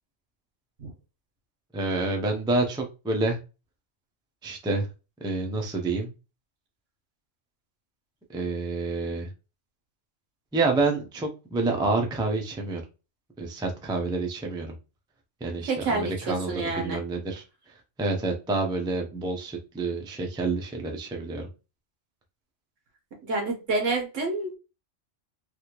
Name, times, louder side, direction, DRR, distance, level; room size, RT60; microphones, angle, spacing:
voice 1, 1.7-3.4 4.4-4.9 5.2-6.1 8.3-9.3 10.5-12.8 13.4-14.7 15.4-17.4 18.0-21.5, right 3 dB, 5° right, 2 dB, 0.3 m, -28 dB
voice 2, 15.7-17.0 23.2-24.6, right 3 dB, 85° right, 1 dB, 1.5 m, -28 dB
3.4 x 2.5 x 2.9 m, 0.30 s
omnidirectional pair, 1.3 m